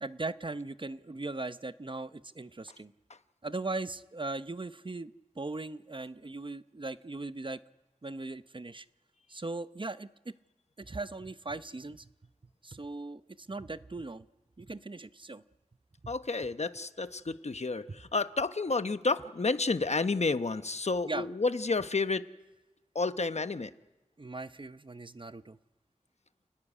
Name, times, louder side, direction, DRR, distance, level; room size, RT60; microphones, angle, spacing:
voice 1, 0.0-2.9 3.4-7.6 8.0-8.9 9.3-10.3 10.8-12.1 12.6-14.3 14.6-15.4 16.0-16.1 21.0-21.3 24.2-25.6, right 2 dB, 40° right, 13 dB, 0.8 m, -39 dB
voice 2, 16.1-22.3 22.9-23.7, left 3 dB, 60° left, 11 dB, 1.0 m, -30 dB
29.0 x 13.0 x 10.0 m, 1.1 s
wide cardioid pair, 50°, 13 cm